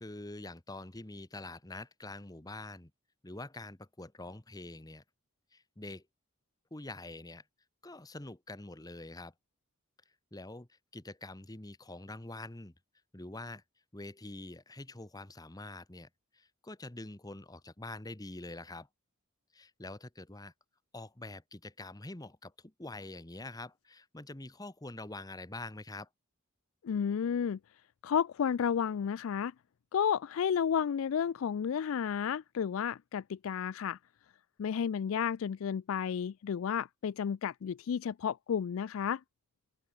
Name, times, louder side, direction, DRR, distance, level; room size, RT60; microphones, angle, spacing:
voice 1, 0.0-2.9 3.2-5.0 5.5-6.0 6.7-7.4 7.8-9.3 10.3-12.7 13.1-13.6 13.9-18.9 19.5-20.5 20.9-26.1, left 2 dB, 15° left, 1.1 m, -45 dB
voice 2, 26.8-27.6 28.0-29.5 29.9-34.0 34.6-39.2, left 7 dB, 70° left, 0.3 m, -32 dB
open air
head